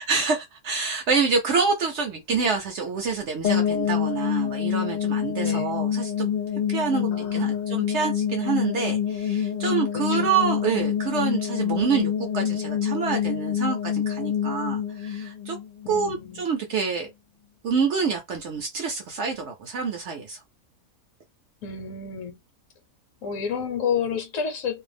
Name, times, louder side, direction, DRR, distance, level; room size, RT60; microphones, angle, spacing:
voice 1, 0.0-6.3 6.7-15.6 15.9-17.1 17.6-20.4, right 5 dB, 65° right, 0.7 m, -27 dB
sound 1, 3.4-16.3, left 8 dB, 80° left, 0.4 m, -27 dB
voice 2, 7.0-7.6 10.1-10.3 15.8-16.5 21.6-22.4 23.2-24.8, left 6 dB, 65° left, 1.0 m, -30 dB
2.6 x 2.0 x 3.3 m
omnidirectional pair, 1.6 m